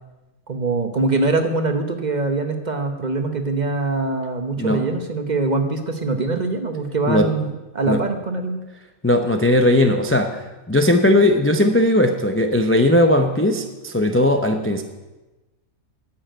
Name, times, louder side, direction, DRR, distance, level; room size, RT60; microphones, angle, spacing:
voice 1, 0.5-8.6, right 3 dB, 35° right, 6 dB, 1.0 m, -23 dB
voice 2, 9.0-10.4 10.7-14.8, left 1 dB, 20° left, 5 dB, 0.3 m, -17 dB
9.9 x 7.2 x 9.0 m, 1.1 s
omnidirectional pair, 1.6 m